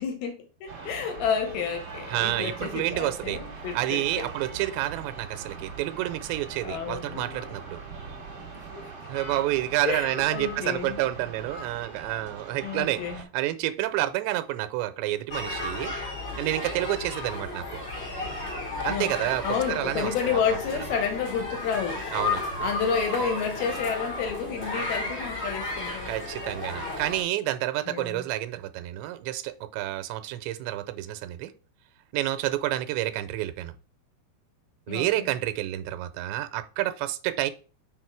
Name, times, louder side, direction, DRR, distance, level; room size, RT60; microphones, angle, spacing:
voice 1, 0.0-4.3 6.6-7.2 8.7-8.9 9.9-11.0 12.6-13.2 18.9-22.1 22.6-26.1 27.9-28.2 34.9-35.3, left 7 dB, 70° left, 2.7 m, -30 dB
sound 1, 0.7-13.2, right 4 dB, 55° right, 1.6 m, -41 dB
voice 2, 2.1-3.4 3.8-7.8 9.1-13.0 13.3-15.9 16.4-17.8 18.8-20.6 22.1-22.4 26.1-31.5 32.1-33.7 34.9-37.5, right 15 dB, 90° right, 2.9 m, -29 dB
Electric guitar / Bass guitar, 7.1-13.5, left 7 dB, 50° left, 3.2 m, -55 dB
sound 2, 15.3-27.2, left 2 dB, 30° left, 2.5 m, -33 dB
6.1 x 4.3 x 4.6 m
omnidirectional pair, 4.9 m